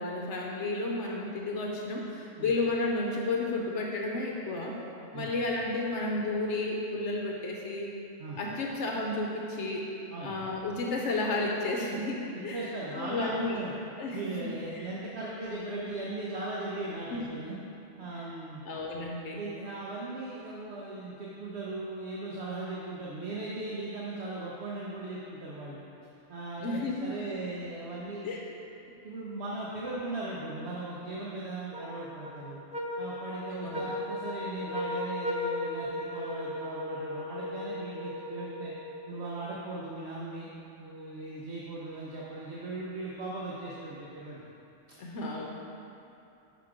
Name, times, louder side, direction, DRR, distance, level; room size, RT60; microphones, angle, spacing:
voice 1, 0.0-4.8 5.1-7.9 8.4-9.9 10.2-13.6 14.0-14.4 14.7-14.8 17.1-17.2 18.1-18.2 18.7-19.4 26.6-27.2 28.2-28.4 33.6-33.9 45.0-45.5, left 2 dB, 70° left, -1 dB, 1.0 m, -32 dB
voice 2, 12.3-13.7 14.1-17.6 18.0-18.6 19.3-25.8 26.3-28.4 29.0-32.6 33.0-38.7 39.1-40.5 40.8-44.4, right 2 dB, 60° right, -6 dB, 1.0 m, -38 dB
sound 1, 31.7-39.3, left 1 dB, 10° right, 0.4 m, -36 dB
5.9 x 5.9 x 4.9 m, 2.7 s
omnidirectional pair, 1.3 m